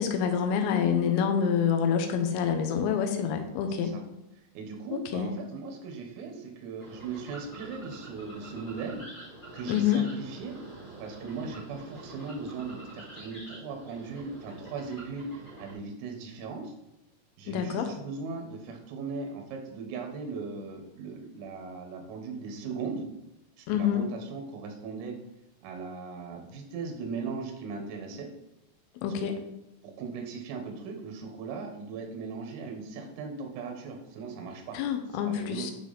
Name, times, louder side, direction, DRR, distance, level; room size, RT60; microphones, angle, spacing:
voice 1, 0.0-4.0 4.9-5.3 9.7-10.0 17.5-17.9 23.7-24.1 29.0-29.3 34.7-35.7, left 8 dB, 90° left, 5 dB, 3.3 m, -27 dB
voice 2, 3.7-4.0 4.6-9.0 9.5-10.5 11.0-16.7 17.4-23.1 23.6-25.1 25.6-28.3 29.0-29.3 29.8-34.8 35.3-35.7, right 4 dB, 90° right, 3 dB, 3.7 m, -38 dB
sound 1, 6.8-15.7, right 2 dB, 25° left, 1.6 m, -46 dB
9.6 x 3.2 x 4.0 m, 0.89 s
omnidirectional pair, 5.6 m